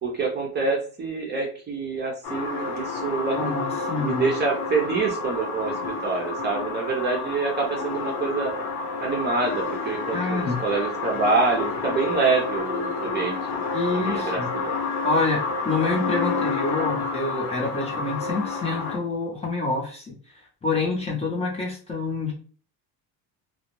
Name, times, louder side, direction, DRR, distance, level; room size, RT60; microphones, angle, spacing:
voice 1, 0.0-3.5 3.9-8.5 9.0-13.6 13.9-14.7, right 4 dB, 25° right, 0 dB, 0.6 m, -26 dB
sound 1, 2.2-19.0, left 4 dB, 75° left, 0.8 m, -29 dB
voice 2, 3.3-4.2 10.1-10.6 13.7-14.5 15.0-20.1 20.6-22.3, left 3 dB, 15° left, -3 dB, 0.6 m, -27 dB
2.3 x 2.0 x 2.9 m, 0.41 s
cardioid pair, 125°, 38 cm